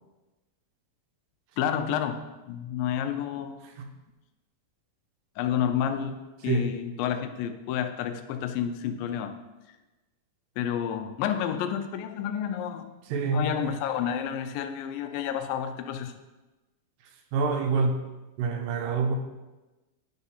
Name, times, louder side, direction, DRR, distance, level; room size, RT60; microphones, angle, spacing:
voice 1, 1.6-3.6 5.4-9.3 10.6-12.9 13.3-16.1, left 9 dB, 85° left, 7 dB, 2.3 m, -30 dB
voice 2, 13.1-13.5 17.3-18.0 18.4-19.2, right 4 dB, 80° right, 5 dB, 2.3 m, -26 dB
8.9 x 3.6 x 5.6 m, 1.1 s
omnidirectional pair, 4.1 m